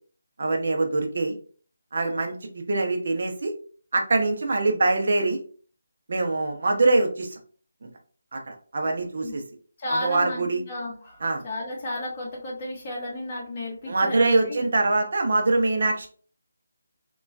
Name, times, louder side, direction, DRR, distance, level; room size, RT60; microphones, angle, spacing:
voice 1, 0.4-1.3 1.9-3.5 3.9-5.4 6.1-7.4 7.8-7.9 8.3-9.4 9.9-10.6 11.2-11.4 13.9-16.1, right 2 dB, 45° right, 3 dB, 0.6 m, -24 dB
voice 2, 9.8-14.6, left 1 dB, 20° left, -3 dB, 0.7 m, -33 dB
2.9 x 2.2 x 2.5 m, 0.42 s
figure-of-eight pair, 175°, 0 cm